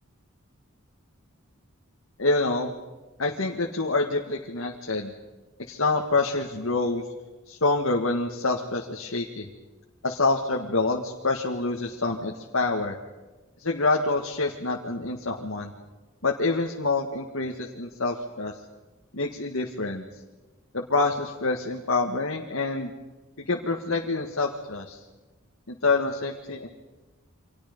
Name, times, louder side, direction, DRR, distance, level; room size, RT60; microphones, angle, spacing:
voice 1, 2.2-2.7 3.2-5.1 5.7-7.0 7.5-9.5 10.0-13.0 13.6-15.7 16.2-18.5 19.1-20.1 20.7-22.9 23.5-25.0 25.7-26.7, left 3 dB, 80° left, 0 dB, 1.9 m, -26 dB
29.5 x 25.5 x 5.4 m, 1.1 s
head